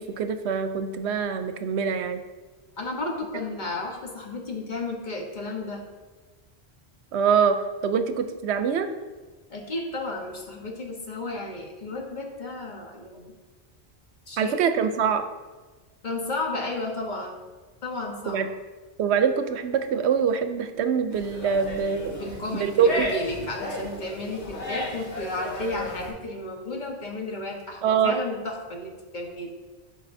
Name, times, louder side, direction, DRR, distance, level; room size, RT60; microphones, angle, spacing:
voice 1, 0.0-2.2 7.1-8.9 14.4-15.3 18.3-18.5 19.0-22.1 22.5-23.1 27.8-28.1, right 7 dB, 80° right, 9 dB, 0.9 m, -24 dB
voice 2, 2.8-5.8 9.5-13.4 14.3-14.6 16.0-17.5 17.8-18.4 22.1-29.5, left 2 dB, 45° left, 1 dB, 1.2 m, -33 dB
sound 1, 21.1-26.1, left 2 dB, 85° left, 1.7 m, -34 dB
11.5 x 5.3 x 2.6 m, 1.3 s
omnidirectional pair, 1.1 m